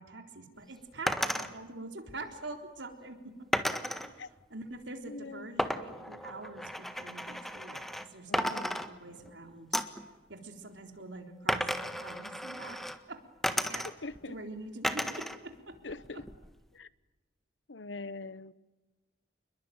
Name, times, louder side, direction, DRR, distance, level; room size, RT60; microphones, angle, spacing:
voice 1, 0.0-3.5 4.0-4.2 4.5-9.8 10.3-12.8 13.1-13.2 13.5-13.9 14.3-15.8 16.1-16.2, right 2 dB, 80° right, 3.8 m, -45 dB
sound 1, 1.1-1.5 3.5-4.1 5.6-8.1 8.3-9.3 9.7-10.1 11.5-13.0 13.4-14.2 14.8-15.4 15.7-16.5, equal, ahead, 1.5 m, -33 dB
voice 2, 5.1-5.5 8.3-8.6 14.0-14.4 15.8-16.3 16.7-16.9 17.7-18.5, left 3 dB, 85° left, 1.0 m, -42 dB
29.0 x 22.0 x 9.4 m
head